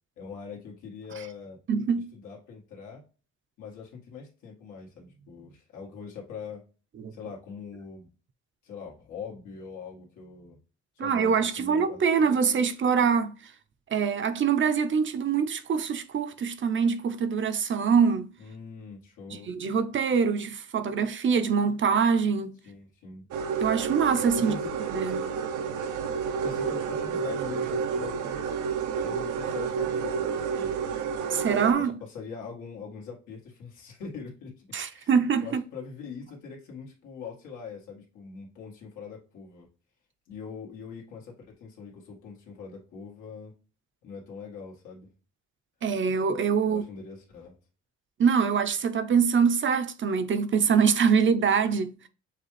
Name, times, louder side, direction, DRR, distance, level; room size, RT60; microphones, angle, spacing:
voice 1, 0.2-1.6 1.9-3.0 3.6-6.6 7.1-8.1 8.6-10.6 11.0-12.0 18.4-19.5 22.6-23.3 24.3-24.7 26.4-28.4 29.0-30.7 31.7-35.1 35.4-39.7 40.3-43.5 44.0-45.1 46.6-47.5, left 5 dB, 90° left, 1.8 m, -42 dB
voice 2, 1.7-2.1 7.0-7.1 11.0-13.3 13.9-18.3 19.3-22.5 23.6-24.5 24.9-25.3 31.3-32.0 34.7-35.6 45.8-46.8 48.2-52.1, right 6 dB, 40° right, 0.6 m, -24 dB
sound 1, 23.3-31.7, right 6 dB, 80° right, 0.7 m, -30 dB
6.6 x 2.4 x 3.1 m
cardioid pair, 90°, 30 cm